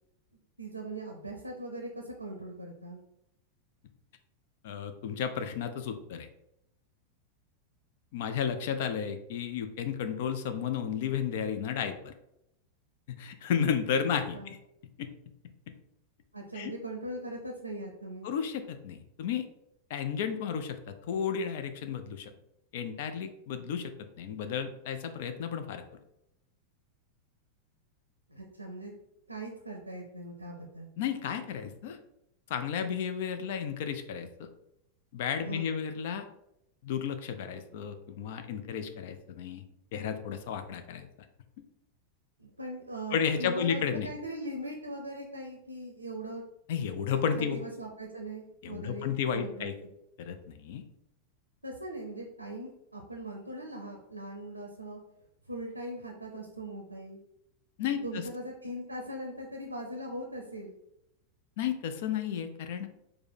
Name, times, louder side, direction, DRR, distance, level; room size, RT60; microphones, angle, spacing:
voice 1, 0.6-3.0 13.9-14.6 16.3-18.3 28.3-28.9 29.3-30.9 35.4-35.7 42.4-46.4 47.4-49.9 51.6-55.0 55.5-57.2 58.0-60.7, right 1 dB, 85° right, 2 dB, 0.5 m, -40 dB
voice 2, 4.6-6.3 8.1-12.1 13.1-14.6 15.0-15.1 16.5-16.7 18.2-19.4 19.9-22.3 22.7-25.8 31.0-32.0 32.5-34.5 35.1-36.2 36.8-39.6 39.9-41.1 43.1-44.1 46.7-47.6 48.6-49.7 50.2-50.8 57.8-58.3 61.6-62.9, left 7 dB, 50° left, 8 dB, 0.4 m, -33 dB
4.3 x 2.1 x 4.3 m, 0.82 s
figure-of-eight pair, 90°, 0 cm